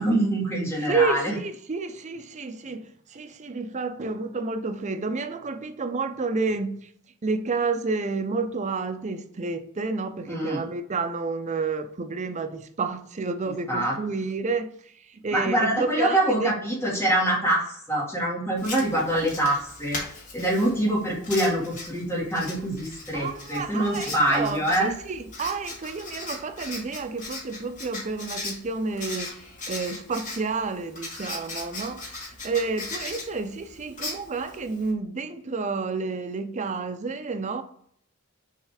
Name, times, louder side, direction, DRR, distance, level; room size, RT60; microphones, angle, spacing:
voice 1, 0.0-1.4 10.3-10.6 13.7-13.9 15.3-20.0 20.3-24.9, right 1 dB, 10° left, 1.8 m, -25 dB
voice 2, 0.9-6.9 7.2-16.6 23.1-29.4 29.7-32.1 32.4-37.6, right 4 dB, 30° right, 0.5 m, -30 dB
Writing, 18.6-34.9, left 2 dB, 35° left, 1.7 m, -39 dB
6.4 x 3.2 x 4.9 m
head